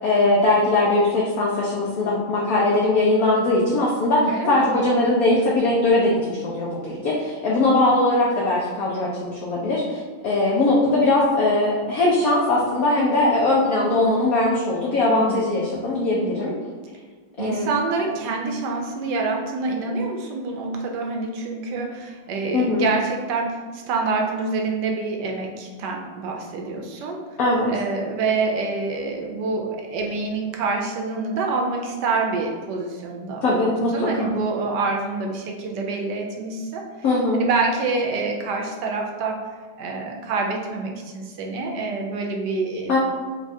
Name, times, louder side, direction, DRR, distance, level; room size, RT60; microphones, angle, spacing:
voice 1, 0.0-16.5 17.4-17.7 22.5-22.9 27.4-27.7 33.4-34.3 37.0-37.4 42.9-43.0, left 2 dB, 70° left, -4 dB, 0.9 m, -20 dB
voice 2, 4.3-4.7 15.1-15.6 17.4-27.2 27.7-36.8 37.3-39.4 39.8-43.0, right 3 dB, 75° right, 1 dB, 1.1 m, -26 dB
3.6 x 2.3 x 4.1 m, 1.5 s
omnidirectional pair, 2.1 m